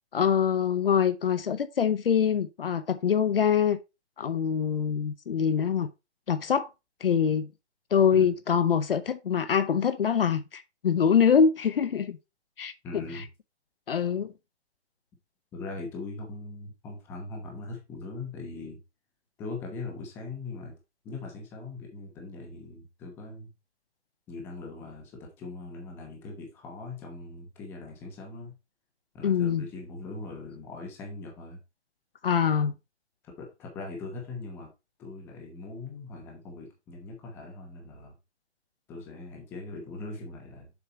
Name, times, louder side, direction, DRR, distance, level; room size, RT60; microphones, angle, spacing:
voice 1, 0.1-3.8 4.2-5.9 6.3-6.7 7.0-7.5 7.9-12.2 12.6-13.0 13.9-14.3 29.2-29.7 32.2-32.7, left 7 dB, 55° left, 0.8 m, -24 dB
voice 2, 12.8-13.3 15.5-18.8 19.4-20.7 21.0-23.5 24.3-28.5 29.1-31.6 33.2-34.7 35.0-38.1 38.9-40.7, left 3 dB, 5° left, 1.0 m, -40 dB
7.1 x 5.6 x 4.2 m
hypercardioid pair, 170°, 34 cm